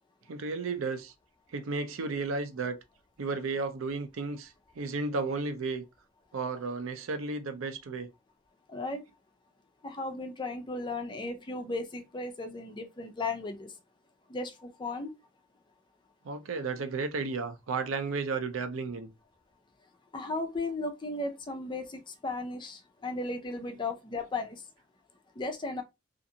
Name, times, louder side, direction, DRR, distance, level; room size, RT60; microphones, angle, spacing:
voice 1, 0.3-1.1 1.5-2.8 3.2-5.8 6.3-8.1 16.3-19.1, right 4 dB, 80° right, 0.5 m, -33 dB
voice 2, 8.7-9.0 9.8-13.7 14.3-15.1 20.1-24.6 25.4-25.8, left 2 dB, 25° left, 0.5 m, -35 dB
2.5 x 2.5 x 2.7 m
head